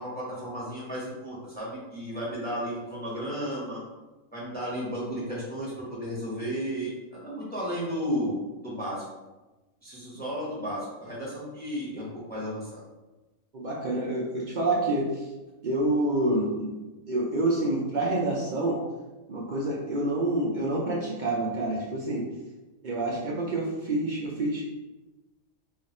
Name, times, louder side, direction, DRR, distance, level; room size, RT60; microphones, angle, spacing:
voice 1, 0.0-3.8 4.3-8.4 8.6-9.0 9.8-12.8, equal, 10° left, -6 dB, 0.7 m, -33 dB
voice 2, 13.5-15.3 15.6-16.7 17.0-18.8 19.3-22.3 22.8-24.6, right 2 dB, 65° right, -4 dB, 0.4 m, -27 dB
2.5 x 2.4 x 4.1 m, 1.1 s
omnidirectional pair, 1.4 m